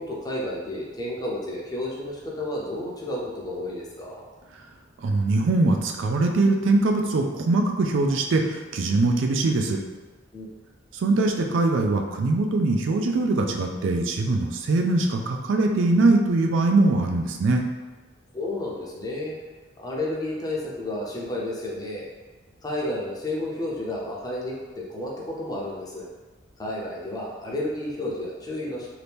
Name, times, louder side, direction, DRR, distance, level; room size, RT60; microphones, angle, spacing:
voice 1, 0.0-4.2 10.3-10.5 18.3-19.3 19.8-22.0 22.6-26.1 26.6-28.9, left 1 dB, 20° left, -4 dB, 0.6 m, -31 dB
voice 2, 5.0-9.8 11.0-17.6, right 2 dB, 70° right, 3 dB, 0.4 m, -22 dB
2.8 x 2.6 x 3.4 m, 1.3 s
head